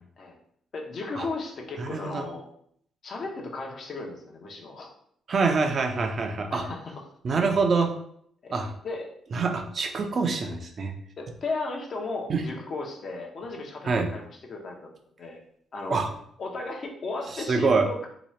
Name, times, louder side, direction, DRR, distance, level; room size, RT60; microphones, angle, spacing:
voice 1, 0.7-2.5 3.0-4.9 6.5-7.0 8.4-8.5 8.8-9.1 11.2-14.2 14.5-14.9 15.2-15.4 15.7-16.0 16.4-18.1, left 3 dB, 50° left, 1 dB, 0.8 m, -35 dB
voice 2, 1.8-2.3 5.3-6.6 7.2-7.9 8.5-8.7 9.3-10.9 12.3-12.4 13.8-14.1 15.9-16.1 17.3-17.8, right 4 dB, 45° right, 4 dB, 0.5 m, -25 dB
2.9 x 2.3 x 4.2 m, 0.66 s
cardioid pair, 90°, 0 cm